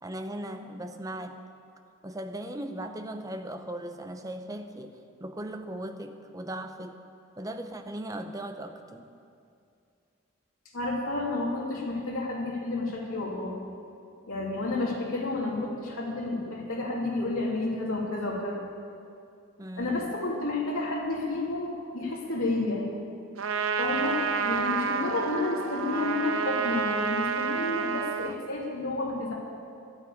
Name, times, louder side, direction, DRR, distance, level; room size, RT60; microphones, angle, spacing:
voice 1, 0.0-1.4 2.0-7.0 7.4-9.1 19.6-20.1, right 1 dB, 15° right, 6 dB, 0.7 m, -38 dB
voice 2, 10.7-13.5 14.3-18.6 19.8-22.9 23.8-29.3, left 2 dB, 80° left, -3 dB, 2.8 m, -30 dB
Trumpet, 23.4-28.4, right 6 dB, 75° right, 0.6 m, -29 dB
12.0 x 9.5 x 8.6 m, 2.4 s
head